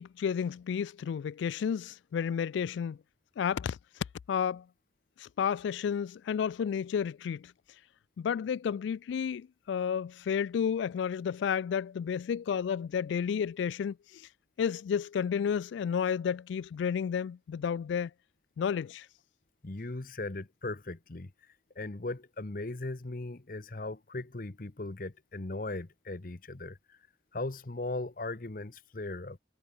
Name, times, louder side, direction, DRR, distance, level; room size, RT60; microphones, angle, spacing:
voice 1, 0.0-3.0 3.4-3.8 4.3-4.6 5.2-7.5 8.2-14.3 14.6-18.1 18.6-19.1, left 7 dB, 80° left, 0.3 m, -31 dB
voice 2, 19.6-21.3 21.8-27.0 27.3-29.4, left 2 dB, 50° left, 0.9 m, -38 dB
head